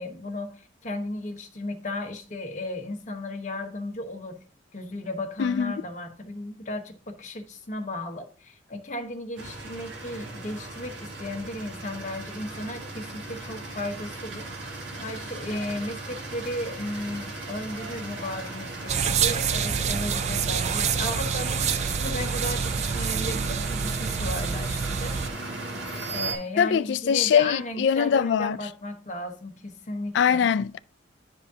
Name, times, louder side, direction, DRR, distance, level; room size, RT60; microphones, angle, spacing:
voice 1, 0.0-4.4 4.7-25.2 26.1-30.5, left 1 dB, 40° left, 1.0 m, -35 dB
voice 2, 5.4-5.7 26.6-28.6 30.1-30.8, left 7 dB, 65° left, 0.3 m, -22 dB
sound 1, 9.4-26.4, right 2 dB, 80° right, 1.6 m, -37 dB
sound 2, 18.9-25.3, right 6 dB, 35° right, 0.4 m, -27 dB
10.5 x 5.0 x 2.8 m
head